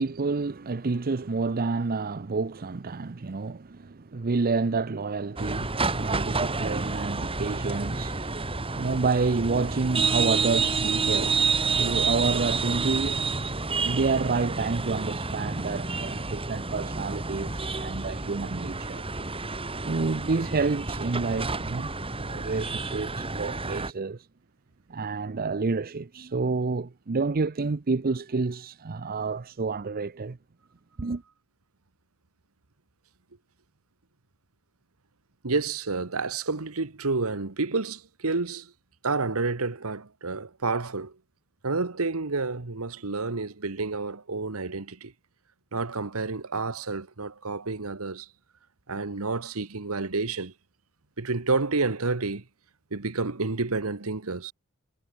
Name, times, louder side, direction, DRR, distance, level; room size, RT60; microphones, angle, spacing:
voice 1, 0.0-11.5 11.8-13.2 13.8-19.1 19.8-21.9 22.2-24.3 24.9-30.4 31.0-31.2, right 4 dB, 40° right, 0.6 m, -29 dB
sound 1, 5.4-23.9, right 4 dB, 25° right, 2.7 m, -29 dB
voice 2, 35.4-38.7 39.0-41.1 41.6-45.1 45.7-48.3 48.9-50.5 51.2-52.4 52.9-54.5, right 3 dB, 70° right, 1.4 m, -29 dB
head